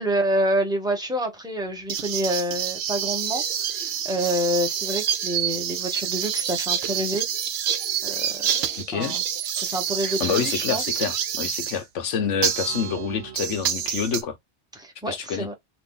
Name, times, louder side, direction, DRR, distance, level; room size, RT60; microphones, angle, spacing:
voice 1, 0.0-7.3 8.0-8.4 8.9-9.2 9.6-11.0 14.8-15.5, right 1 dB, 5° right, 0.8 m, -27 dB
sound 1, 1.9-11.8 12.4-14.2, right 9 dB, 65° right, 0.8 m, -27 dB
voice 2, 8.8-9.2 10.0-14.4 15.1-15.5, left 7 dB, 90° left, 1.1 m, -27 dB
3.0 x 2.5 x 3.7 m
omnidirectional pair, 1.2 m